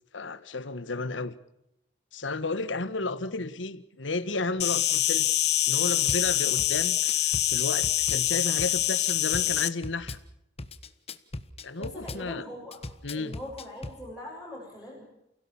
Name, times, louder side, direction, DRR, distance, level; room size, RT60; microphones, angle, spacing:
voice 1, 0.1-1.4 2.1-5.3 5.7-10.2 11.6-12.5 13.0-13.4, left 3 dB, 80° left, 1.4 m, -33 dB
Insect, 4.6-9.7, left 14 dB, 60° left, 1.1 m, -25 dB
Drum kit / Bass drum, 6.1-6.2 6.6-8.2 8.6-10.2 10.6-12.2 12.7-14.0, left 2 dB, 30° left, 1.4 m, -38 dB
voice 2, 11.8-12.8 13.1-15.0, left 1 dB, 5° right, 7.0 m, -41 dB
29.5 x 17.0 x 7.2 m
head